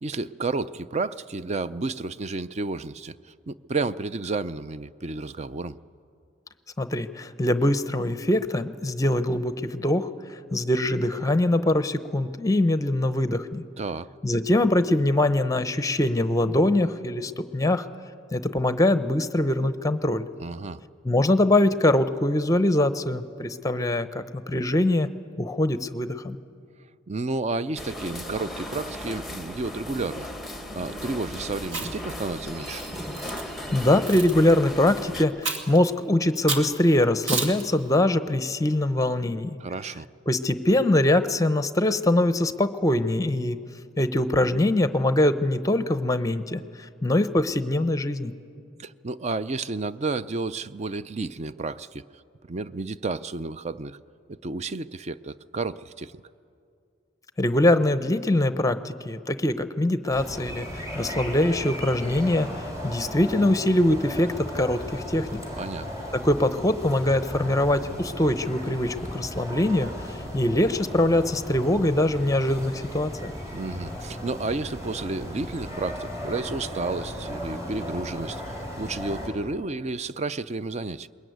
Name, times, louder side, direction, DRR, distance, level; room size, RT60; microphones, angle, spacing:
voice 1, 0.0-3.2 3.5-5.8 13.8-14.1 20.4-20.8 27.1-32.8 39.6-40.1 48.8-52.1 52.5-54.0 54.3-56.2 65.6-65.9 73.5-81.1, right 3 dB, 35° right, 14 dB, 0.5 m, -31 dB
voice 2, 6.8-10.1 10.5-13.6 14.2-17.9 18.3-20.3 21.0-25.1 25.4-26.4 33.7-39.6 40.3-43.6 44.0-46.6 47.0-48.3 57.4-62.5 62.8-65.4 66.1-69.9 70.3-73.3, left 1 dB, 15° left, 12 dB, 0.8 m, -23 dB
sound 1, 27.8-35.2, left 1 dB, ahead, 1.3 m, -36 dB
Chewing mastication, 31.6-32.1 32.8-33.4 34.1-34.3 35.4-35.8 36.5-36.7 37.3-37.6, right 3 dB, 70° right, 2.3 m, -30 dB
sound 2, 60.1-79.3, equal, 15° right, 4.3 m, -36 dB
22.0 x 21.0 x 9.3 m, 2.4 s
head